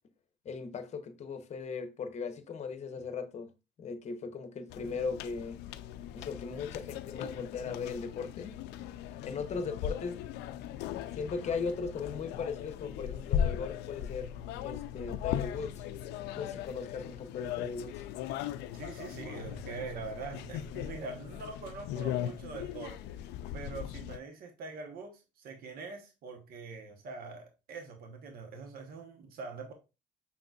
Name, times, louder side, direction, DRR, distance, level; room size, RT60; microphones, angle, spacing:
voice 1, 0.4-3.5 3.8-5.6 6.1-8.5 9.2-10.2 11.1-15.8 16.3-18.0, left 5 dB, 45° left, 0.8 m, -38 dB
sound 1, 4.7-24.2, left 10 dB, 85° left, 0.4 m, -38 dB
voice 2, 18.7-29.7, right 4 dB, 60° right, 1.0 m, -44 dB
5.9 x 3.8 x 2.3 m
cardioid pair, 110°, 17 cm